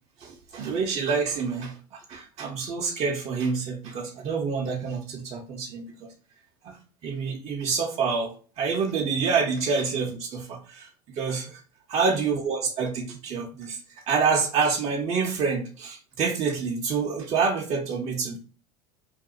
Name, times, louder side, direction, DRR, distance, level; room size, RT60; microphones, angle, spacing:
voice 1, 0.2-6.1 6.6-11.6 11.9-18.4, right 5 dB, 35° right, 1 dB, 0.5 m, -27 dB
2.3 x 2.3 x 2.6 m, 0.38 s
hypercardioid pair, 85°, 19 cm